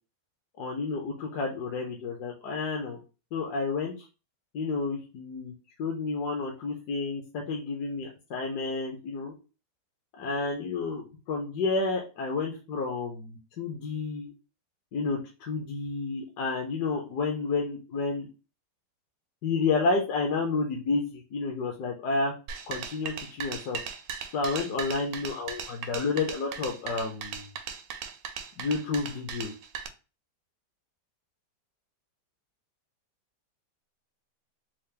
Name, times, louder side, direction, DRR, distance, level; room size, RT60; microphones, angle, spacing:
voice 1, 0.6-3.0 3.3-3.9 4.5-5.5 5.8-9.3 10.2-14.3 14.9-18.3 19.4-22.3 22.7-23.8 24.3-27.5 28.6-29.5, left 4 dB, 70° left, 1 dB, 1.2 m, -30 dB
sound 1, 22.5-29.9, right 7 dB, 80° right, 1.3 m, -38 dB
4.6 x 2.1 x 3.2 m, 0.31 s
omnidirectional pair, 1.9 m